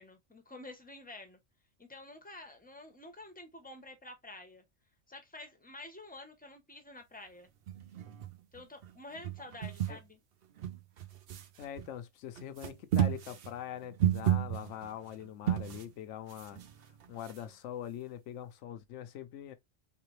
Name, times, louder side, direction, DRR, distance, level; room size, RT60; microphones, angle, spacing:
voice 1, 0.0-1.4 1.8-4.6 5.1-7.5 8.5-10.2, left 2 dB, 10° left, 0.7 m, -49 dB
sound 1, 7.7-8.9 9.2-10.0 10.6-11.9 12.4-15.9 16.3-17.5, right 11 dB, 60° right, 0.7 m, -33 dB
voice 2, 11.6-16.6 17.1-19.6, left 10 dB, 70° left, 0.9 m, -43 dB
3.6 x 3.2 x 3.2 m
omnidirectional pair, 1.3 m